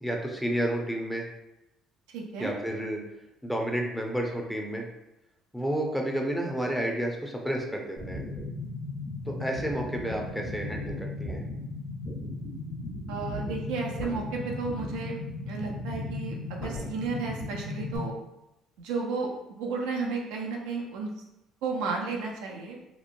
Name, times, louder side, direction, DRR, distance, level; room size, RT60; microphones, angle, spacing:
voice 1, 0.0-1.3 2.4-3.0 3.4-4.9 5.5-8.2 9.3-11.4, right 1 dB, 5° left, 1 dB, 0.6 m, -31 dB
voice 2, 2.1-2.5 13.1-15.2 15.5-18.1 18.8-19.3 19.6-21.1 21.6-22.8, right 4 dB, 80° right, 0 dB, 0.4 m, -33 dB
sound 1, 8.0-18.0, left 2 dB, 40° left, 1.0 m, -36 dB
2.9 x 2.1 x 2.6 m, 0.91 s
supercardioid pair, 70°, 0 cm